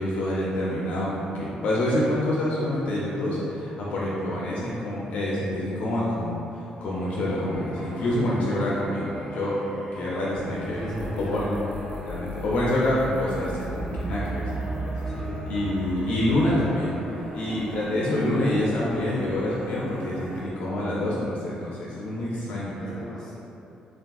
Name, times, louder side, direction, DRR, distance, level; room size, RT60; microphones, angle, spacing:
voice 1, 0.0-9.6 10.0-10.8 11.3-11.5 12.1-15.0 15.5-17.0 17.3-23.0, left 1 dB, 60° left, -6 dB, 0.4 m, -27 dB
sound 1, 6.8-20.4, equal, 90° right, 1.0 m, -38 dB
sound 2, 7.5-13.1, left 3 dB, 25° right, 0.7 m, -43 dB
voice 2, 10.6-11.7 13.9-14.4 15.1-15.4 22.8-23.4, equal, 15° left, -9 dB, 0.9 m, -36 dB
sound 3, 10.9-16.5, right 2 dB, 70° right, 0.4 m, -35 dB
3.4 x 2.3 x 2.2 m, 2.8 s
cardioid pair, 170°, 3 cm